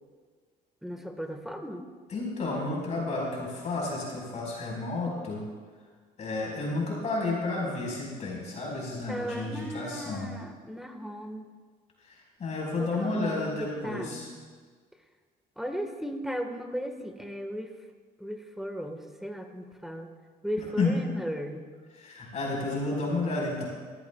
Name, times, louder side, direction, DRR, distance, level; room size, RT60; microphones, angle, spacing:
voice 1, 0.8-1.9 9.1-11.5 12.7-14.3 15.6-17.7 18.2-20.1 20.4-21.7, equal, ahead, 4 dB, 1.5 m, -36 dB
voice 2, 2.1-5.4 6.2-10.4 12.1-14.3 20.8-21.2 22.0-23.7, left 2 dB, 45° left, -3 dB, 4.6 m, -31 dB
22.5 x 14.0 x 2.3 m, 1.6 s
cardioid pair, 110°, 17 cm